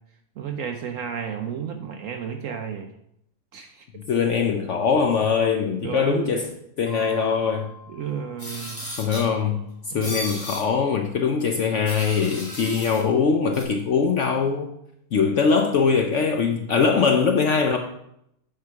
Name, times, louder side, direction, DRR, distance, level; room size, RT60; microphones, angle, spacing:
voice 1, 0.4-2.9 3.5-3.8 5.8-6.4 7.9-8.8 9.9-10.3, right 7 dB, 70° right, 6 dB, 0.8 m, -32 dB
voice 2, 4.1-6.5 6.8-7.7 9.0-9.6 9.9-14.7 15.1-17.8, left 5 dB, 65° left, 4 dB, 0.7 m, -22 dB
sound 1, 6.9-9.4, left 3 dB, 40° right, 1.7 m, -46 dB
sound 2, 8.4-9.3 10.0-10.6 11.8-13.0 13.5-13.6, left 1 dB, 20° left, 2.0 m, -34 dB
7.9 x 4.7 x 4.7 m, 0.76 s
omnidirectional pair, 1.8 m